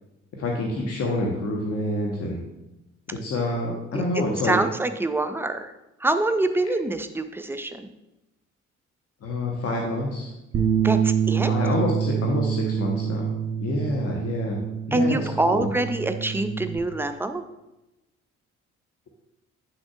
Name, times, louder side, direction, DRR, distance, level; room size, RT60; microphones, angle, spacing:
voice 1, 0.3-2.4 3.1-4.6 9.2-10.3 11.4-13.4 13.6-14.6 14.9-15.2 15.4-15.7, left 2 dB, 40° left, 0 dB, 1.0 m, -27 dB
voice 2, 3.9-5.7 6.0-7.9 10.8-11.5 14.9-17.4, right 2 dB, 5° right, 9 dB, 0.4 m, -25 dB
Bass guitar, 10.5-16.8, right 8 dB, 40° right, 1.1 m, -26 dB
8.0 x 6.1 x 2.4 m, 0.96 s
figure-of-eight pair, 45°, 37 cm